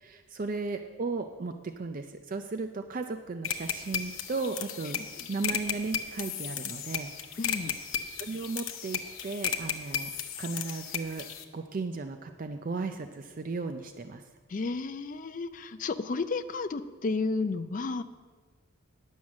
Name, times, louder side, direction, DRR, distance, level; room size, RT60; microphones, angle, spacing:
voice 1, 0.0-5.0 5.3-7.1 8.2-10.1 10.4-14.2, right 3 dB, 40° right, 7 dB, 0.4 m, -35 dB
sound 1, 3.4-11.4, left 8 dB, 70° left, 0.8 m, -35 dB
voice 2, 7.4-7.8 14.5-18.0, left 3 dB, 40° left, 12 dB, 0.4 m, -32 dB
10.0 x 6.3 x 7.2 m, 1.5 s
head